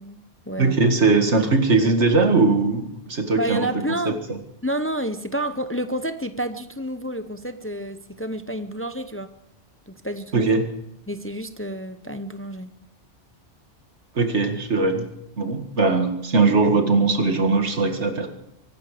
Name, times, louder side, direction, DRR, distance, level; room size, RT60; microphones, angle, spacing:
voice 1, 0.0-0.8 3.4-4.2 4.6-9.3 9.9-10.6 11.1-12.7, right 1 dB, 15° left, 10 dB, 0.6 m, -29 dB
voice 2, 0.6-3.7 4.1-4.2 10.3-10.6 14.2-15.1 15.4-18.3, right 3 dB, 70° right, 5 dB, 2.2 m, -20 dB
24.0 x 12.0 x 5.0 m, 0.80 s
omnidirectional pair, 1.2 m